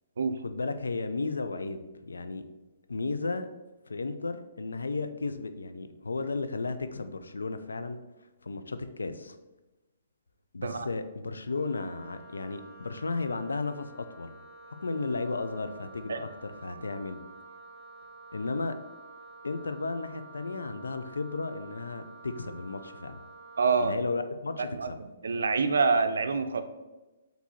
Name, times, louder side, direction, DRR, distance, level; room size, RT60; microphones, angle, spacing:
voice 1, 0.4-2.4 2.9-3.5 3.9-8.0 8.4-9.4 10.5-14.3 14.8-17.2 18.3-18.8 19.4-23.2 23.8-25.0, left 3 dB, 90° left, 9 dB, 0.4 m, -34 dB
Wind instrument woodwind instrument, 11.5-24.0, right 3 dB, 10° left, 1.0 m, -50 dB
voice 2, 23.6-23.9 24.7-26.6, right 4 dB, 75° right, 9 dB, 0.4 m, -26 dB
4.6 x 2.6 x 4.1 m, 1.1 s
hypercardioid pair, 135°, 0 cm